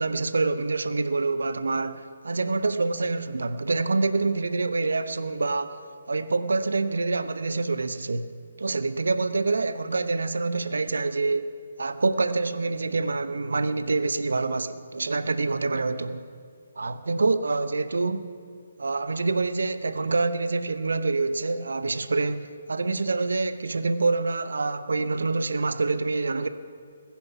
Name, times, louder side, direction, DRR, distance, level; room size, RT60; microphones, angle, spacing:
voice 1, 0.0-5.8 6.1-8.3 8.6-16.2 16.8-18.3 18.8-26.5, right 3 dB, 65° right, 0.7 m, -26 dB
21.0 x 10.0 x 5.8 m
figure-of-eight pair, 140°, 0 cm